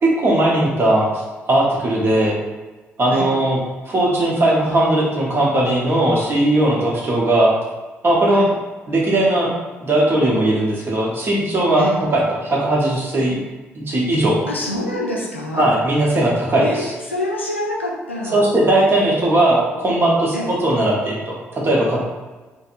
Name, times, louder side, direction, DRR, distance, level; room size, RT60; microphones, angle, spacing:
voice 1, 0.0-2.4 3.0-3.6 3.9-7.5 8.0-8.4 8.9-9.5 9.8-11.8 12.1-13.4 13.7-14.4 15.6-16.9 18.3-22.0, right 1 dB, 35° right, -4 dB, 1.1 m, -18 dB
voice 2, 14.5-15.7 16.6-18.4 20.3-20.5, left 1 dB, 90° left, -3 dB, 0.4 m, -26 dB
4.0 x 2.2 x 2.6 m, 1.2 s
figure-of-eight pair, 40°, 6 cm